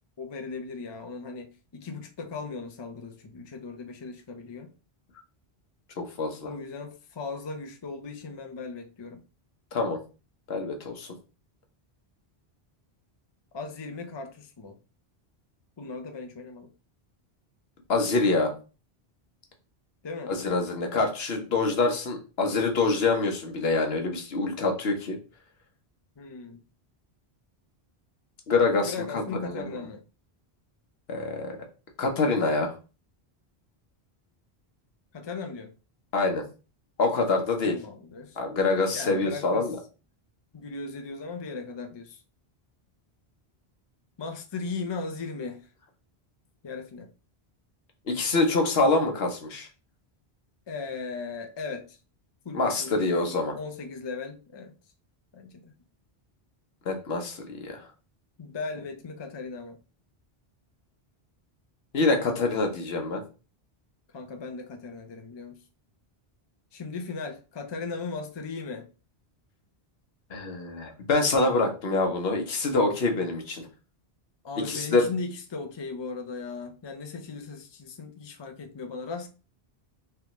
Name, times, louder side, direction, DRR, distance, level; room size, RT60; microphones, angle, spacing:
voice 1, 0.2-4.7 6.4-9.2 13.5-14.8 15.8-16.7 20.0-20.3 26.2-26.6 28.8-30.0 35.1-35.7 37.7-38.4 38.9-39.7 40.5-42.2 44.2-45.6 46.6-47.1 50.7-52.0 52.4-54.8 55.3-55.7 58.4-59.8 64.1-65.6 66.7-68.9 74.4-79.3, left 4 dB, 35° left, 0.5 m, -37 dB
voice 2, 6.0-6.5 9.7-10.0 10.5-11.1 17.9-18.5 20.3-25.2 28.5-28.9 29.4-29.7 31.1-31.6 32.0-32.7 36.1-36.4 37.0-37.8 38.4-39.8 48.1-49.7 52.5-53.6 56.9-57.8 61.9-63.2 70.3-73.6 74.7-75.1, left 3 dB, 75° left, 1.1 m, -25 dB
3.4 x 3.4 x 3.0 m
omnidirectional pair, 1.1 m